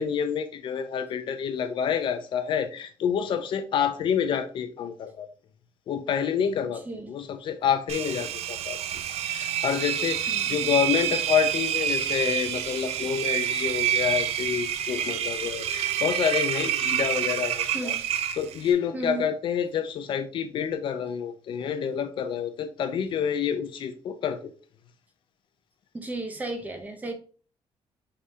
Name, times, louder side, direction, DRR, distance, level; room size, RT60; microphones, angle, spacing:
voice 1, 0.0-5.3 5.9-6.8 7.1-8.8 9.3-17.9 18.4-24.5, left 8 dB, 55° left, 0.4 m, -28 dB
Engine, 7.9-18.7, right 10 dB, 80° right, 0.4 m, -28 dB
voice 2, 17.7-18.1 18.9-19.3 25.9-27.1, right 2 dB, 15° right, 0.5 m, -34 dB
4.8 x 3.2 x 2.7 m
cardioid pair, 170°, 10 cm